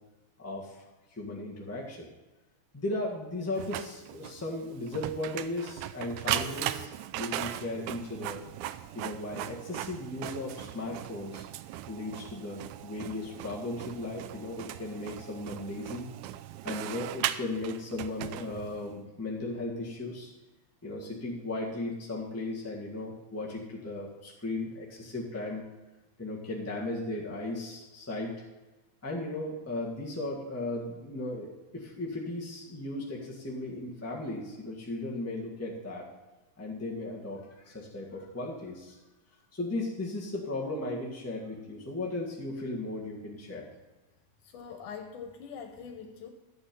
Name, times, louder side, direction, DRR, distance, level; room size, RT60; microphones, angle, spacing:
voice 1, 0.4-0.8 1.2-2.1 2.7-8.4 8.9-11.5 11.9-16.1 16.6-20.3 20.8-25.6 26.2-28.4 29.0-36.1 36.6-39.0 39.5-43.7, left 2 dB, 10° left, -4 dB, 0.8 m, -36 dB
Printer, 3.6-18.9, right 13 dB, 80° right, 1.9 m, -38 dB
voice 2, 44.4-46.3, left 6 dB, 80° left, 4 dB, 2.4 m, -43 dB
12.0 x 8.4 x 5.3 m, 1.2 s
omnidirectional pair, 3.5 m